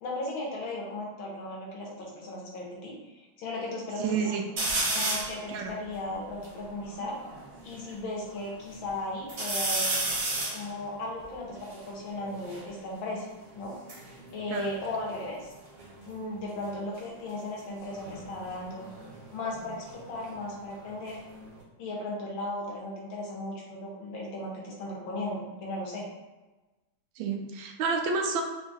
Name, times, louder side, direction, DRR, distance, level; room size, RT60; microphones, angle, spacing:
voice 1, 0.0-4.4 4.9-7.2 7.6-10.0 10.5-13.8 14.3-15.5 16.1-18.9 19.3-21.2 21.8-26.1, left 2 dB, 80° left, -3 dB, 1.7 m, -36 dB
voice 2, 4.0-4.4 5.5-5.7 14.5-14.7 27.2-28.4, right 5 dB, 90° right, 3 dB, 1.4 m, -29 dB
sound 1, 4.6-5.4 6.0-6.1 6.2-7.8 8.3-8.9 9.3-12.7 13.6-15.5 15.8-16.3 17.8-20.5 20.8-21.6, right 2 dB, 40° right, 1.0 m, -33 dB
4.2 x 2.3 x 4.0 m, 1.1 s
omnidirectional pair, 2.1 m